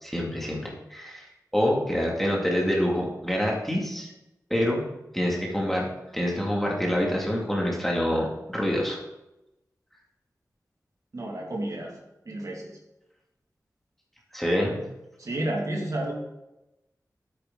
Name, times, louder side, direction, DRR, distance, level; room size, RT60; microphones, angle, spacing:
voice 1, 0.0-4.1 4.5-4.8 5.1-5.8 6.1-9.0 14.3-14.8, equal, 5° left, -2 dB, 2.3 m, -26 dB
voice 2, 11.1-11.9 12.3-12.8 15.2-16.1, right 1 dB, 60° right, -1 dB, 2.3 m, -31 dB
9.9 x 8.7 x 3.9 m, 0.94 s
wide cardioid pair, 80°, 6 cm